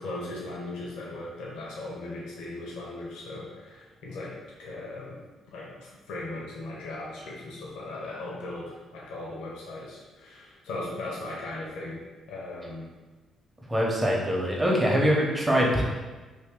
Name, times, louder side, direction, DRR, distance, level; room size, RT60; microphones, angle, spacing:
voice 1, 0.0-5.2 5.5-12.0 12.3-12.9, left 2 dB, 90° left, -4 dB, 0.9 m, -38 dB
voice 2, 13.7-15.8, equal, 15° right, -2 dB, 0.9 m, -23 dB
2.9 x 2.7 x 3.6 m, 1.3 s
cardioid pair, 90°, 0 cm